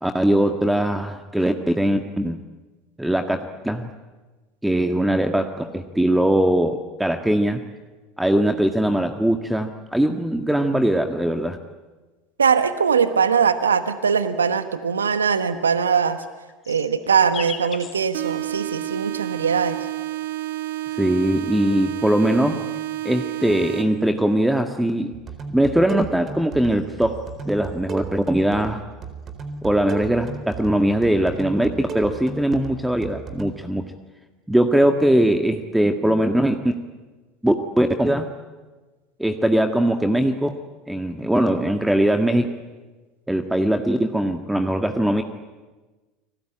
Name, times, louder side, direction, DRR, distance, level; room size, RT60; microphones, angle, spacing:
voice 1, 0.0-2.4 3.0-3.9 4.6-7.6 8.2-11.6 21.0-22.6 23.0-25.2 25.5-28.8 29.6-33.8 34.5-36.8 37.4-38.3 39.2-40.6 40.9-42.5 43.3-45.2, right 1 dB, 5° right, 6 dB, 1.8 m, -21 dB
voice 2, 12.4-16.2 16.7-19.8, right 6 dB, 90° right, 11 dB, 1.2 m, -21 dB
sound 1, 16.2-19.3 20.3-21.6 22.5-24.3 25.7-27.9 28.3-28.8 29.1-30.2 30.5-31.1, left 6 dB, 35° left, 3.5 m, -43 dB
sound 2, 18.1-24.1, right 15 dB, 70° right, 1.7 m, -30 dB
sound 3, 25.1-33.5, right 5 dB, 35° right, 4.3 m, -35 dB
29.5 x 20.5 x 9.0 m, 1.2 s
hypercardioid pair, 75°, 0 cm